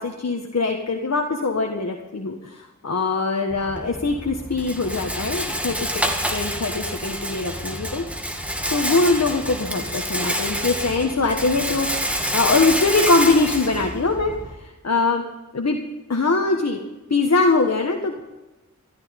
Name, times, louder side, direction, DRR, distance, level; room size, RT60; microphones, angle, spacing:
voice 1, 0.0-6.0 6.3-8.0 8.7-11.9 12.3-15.2 15.5-15.8 16.1-16.8 17.1-18.2, left 3 dB, 60° left, 2 dB, 1.5 m, -22 dB
Rattle, 3.5-14.5, equal, 5° right, 2.2 m, -28 dB
14.5 x 13.5 x 5.3 m, 1.1 s
wide cardioid pair, 60°, 30 cm